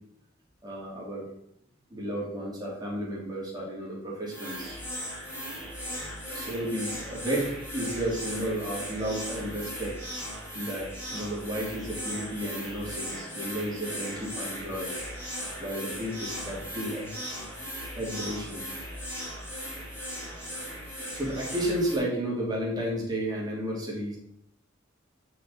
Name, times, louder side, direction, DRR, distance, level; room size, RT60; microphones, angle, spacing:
voice 1, 0.6-1.3 1.9-4.8 6.3-10.0 10.5-14.9 15.6-17.1 17.9-18.7 21.1-24.2, right 1 dB, 20° right, -4 dB, 3.1 m, -32 dB
sound 1, 4.3-22.0, equal, 10° left, 4.3 m, -37 dB
6.8 x 6.0 x 6.3 m, 0.73 s
head